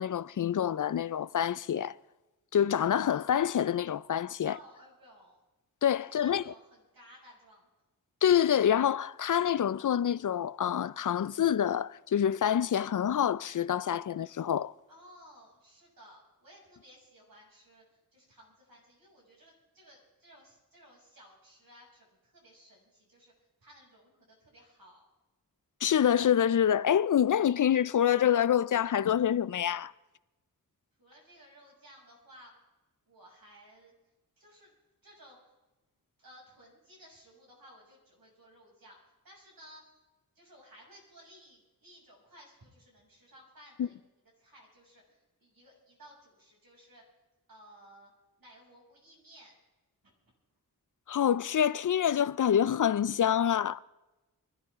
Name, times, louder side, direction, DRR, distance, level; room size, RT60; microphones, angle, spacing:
voice 1, 0.0-1.9 2.5-4.6 5.8-6.4 8.2-14.7 25.8-29.9 43.8-43.9 51.1-53.8, left 9 dB, 60° left, 0.4 m, -26 dB
voice 2, 4.4-5.4 6.0-7.7 14.9-25.0 31.0-32.5 33.1-33.9 34.4-34.7 35.0-35.5 36.2-39.8 40.3-44.0 44.4-47.0 47.5-48.1 48.4-49.5, equal, 75° right, 6.7 m, -57 dB
23.5 x 13.5 x 3.6 m
wide cardioid pair, 90°, 35 cm